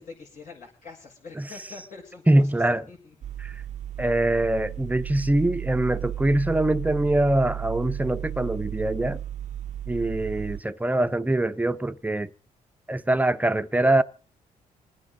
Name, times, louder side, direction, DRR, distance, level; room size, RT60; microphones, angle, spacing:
voice 1, 0.0-2.5 2.9-3.2, left 4 dB, 65° left, 6.9 m, -44 dB
voice 2, 2.3-2.8 3.4-3.6 4.0-9.2 9.9-12.3 12.9-14.0, right 1 dB, 10° right, 0.7 m, -23 dB
sound 1, 3.2-10.6, right 11 dB, 55° right, 0.6 m, -34 dB
27.0 x 9.8 x 4.0 m
cardioid pair, 100°, 15 cm